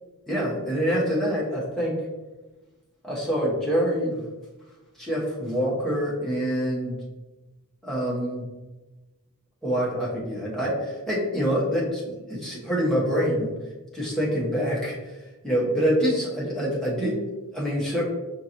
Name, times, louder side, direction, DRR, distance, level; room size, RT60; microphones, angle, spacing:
voice 1, 0.3-2.0 3.0-4.2 5.0-7.0 7.8-8.4 9.6-13.5 13.9-15.1 15.4-17.2 17.5-18.0, equal, ahead, -6 dB, 1.0 m, -26 dB
5.5 x 2.6 x 2.9 m, 1.2 s
head